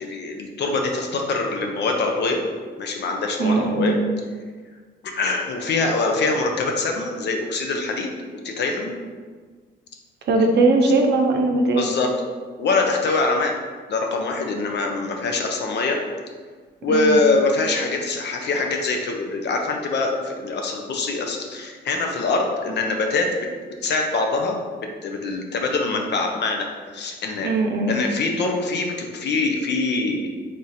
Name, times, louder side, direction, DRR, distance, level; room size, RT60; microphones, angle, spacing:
voice 1, 0.0-2.4 2.8-3.9 5.1-8.1 8.4-8.9 11.7-12.1 12.6-13.5 13.9-16.0 16.8-23.3 23.8-24.6 25.0-26.7 26.9-27.5 27.9-30.3, left 3 dB, 60° left, 2 dB, 0.7 m, -23 dB
voice 2, 3.4-3.9 10.3-11.9 16.9-17.2 27.4-27.9, right 3 dB, 60° right, 2 dB, 0.6 m, -19 dB
3.5 x 2.5 x 4.1 m, 1.5 s
cardioid pair, 90°, 20 cm